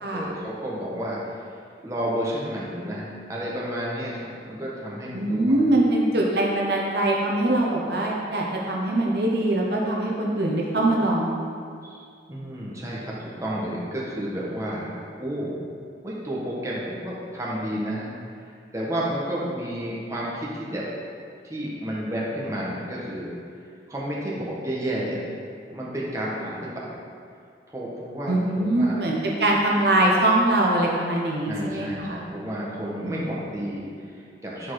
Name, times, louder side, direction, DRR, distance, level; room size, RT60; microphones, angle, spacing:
voice 1, 0.1-1.4 1.8-5.6 11.9-12.0 12.3-15.5 16.0-18.1 18.4-20.8 21.4-23.3 23.9-25.2 25.7-26.9 27.7-29.0 31.5-34.7, equal, 15° right, -6 dB, 1.3 m, -31 dB
voice 2, 5.1-11.4 28.3-32.2 33.0-33.2, right 1 dB, 60° right, -2 dB, 1.0 m, -23 dB
10.0 x 4.3 x 4.8 m, 2.3 s
head